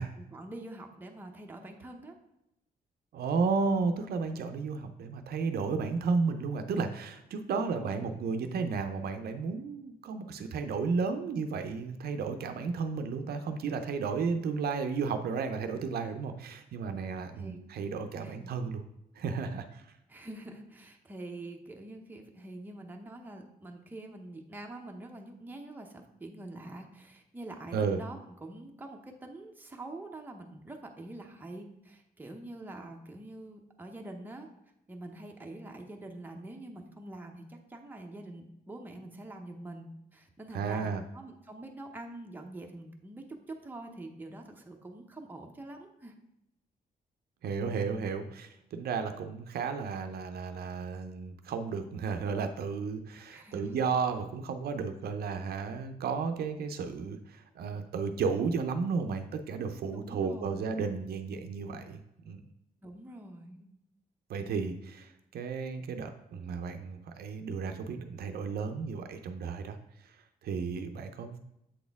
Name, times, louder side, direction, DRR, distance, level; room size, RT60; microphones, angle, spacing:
voice 1, 0.2-2.1 7.5-8.2 17.3-18.5 20.1-34.5 34.9-46.1 53.3-53.8 59.9-60.6 62.8-63.7, right 2 dB, 10° right, 2 dB, 0.7 m, -45 dB
voice 2, 3.1-18.8 19.2-19.9 27.7-28.0 40.5-41.0 47.4-62.4 64.3-69.8 70.0-70.1 70.4-71.4, right 5 dB, 75° right, 7 dB, 0.6 m, -33 dB
7.6 x 4.2 x 3.5 m, 0.84 s
wide cardioid pair, 145°, 16 cm